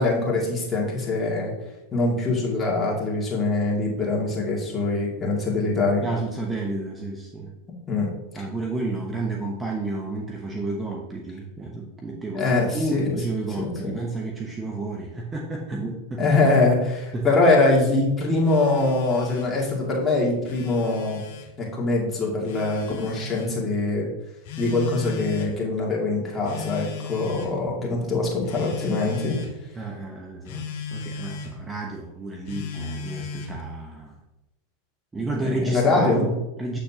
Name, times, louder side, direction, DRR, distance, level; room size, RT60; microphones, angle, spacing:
voice 1, 0.0-1.5 1.9-6.1 7.9-8.1 8.3-8.4 12.3-13.1 13.6-13.9 16.2-21.2 21.6-24.1 24.6-29.4 35.4-36.3, left 2 dB, 20° left, -3 dB, 2.3 m, -23 dB
voice 2, 6.0-7.5 8.3-16.2 17.1-17.3 29.8-34.2 35.1-36.8, right 2 dB, 15° right, 0 dB, 0.9 m, -31 dB
Telephone, 18.4-19.5 20.3-21.5 22.4-23.5 24.5-25.6 26.5-27.6 28.4-29.5 30.5-31.6 32.5-33.6, left 6 dB, 60° left, 1.1 m, -36 dB
7.8 x 6.5 x 2.9 m, 0.97 s
hypercardioid pair, 105°, 0 cm